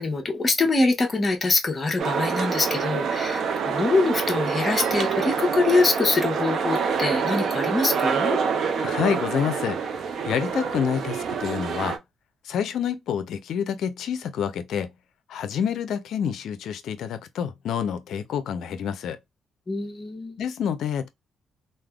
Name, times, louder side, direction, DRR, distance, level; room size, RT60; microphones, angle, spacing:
voice 1, 0.0-8.4 19.7-20.5, left 3 dB, 30° left, 0.9 m, -24 dB
sound 1, 2.0-12.0, right 6 dB, 60° right, 0.5 m, -26 dB
voice 2, 8.8-9.8 10.2-12.0 12.4-14.9 15.3-19.2 20.4-21.1, left 8 dB, 75° left, 0.5 m, -28 dB
3.3 x 2.1 x 2.3 m
cardioid pair, 90°, 0 cm